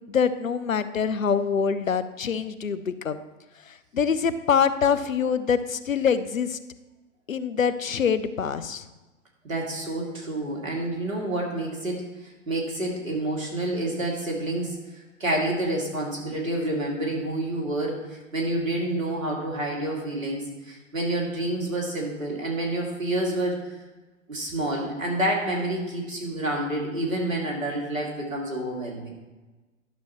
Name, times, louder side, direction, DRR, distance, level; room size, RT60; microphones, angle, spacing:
voice 1, 0.1-3.2 3.7-6.6 7.3-8.8, left 6 dB, 90° left, 13 dB, 0.6 m, -25 dB
voice 2, 9.4-23.8 24.3-29.1, right 1 dB, 85° right, -1 dB, 2.5 m, -28 dB
11.0 x 6.7 x 3.0 m, 1.2 s
figure-of-eight pair, 110°, 39 cm